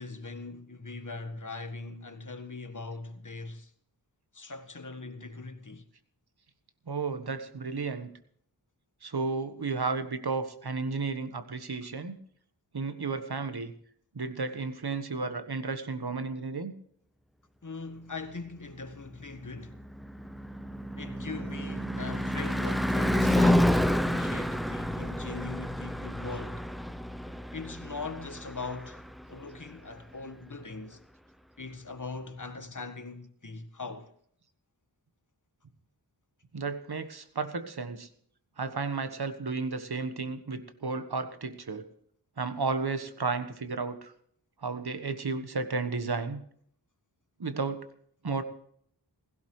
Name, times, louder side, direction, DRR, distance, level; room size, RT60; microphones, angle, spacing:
voice 1, 0.0-3.7 4.3-5.9 17.6-19.8 21.0-26.6 27.5-29.0 29.3-31.0 31.6-34.1, left 3 dB, 45° left, 1.5 m, -41 dB
voice 2, 6.9-8.1 9.0-12.2 12.7-13.7 14.1-16.7 36.5-38.1 38.6-41.8 42.4-44.1 44.6-46.4 47.4-47.9 48.2-48.4, right 4 dB, 60° right, 1.3 m, -33 dB
Car passing by / Truck / Engine, 19.3-29.6, equal, ahead, 0.6 m, -29 dB
16.5 x 16.0 x 3.2 m
wide cardioid pair, 45°, 44 cm